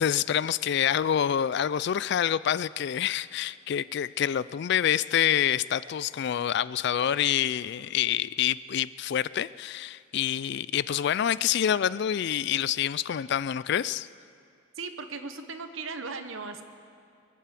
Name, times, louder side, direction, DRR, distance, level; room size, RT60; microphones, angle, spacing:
voice 1, 0.0-14.1, left 9 dB, 55° left, 18 dB, 0.3 m, -27 dB
voice 2, 14.7-16.6, right 4 dB, 80° right, 8 dB, 1.2 m, -37 dB
23.0 x 8.4 x 7.6 m, 2.4 s
head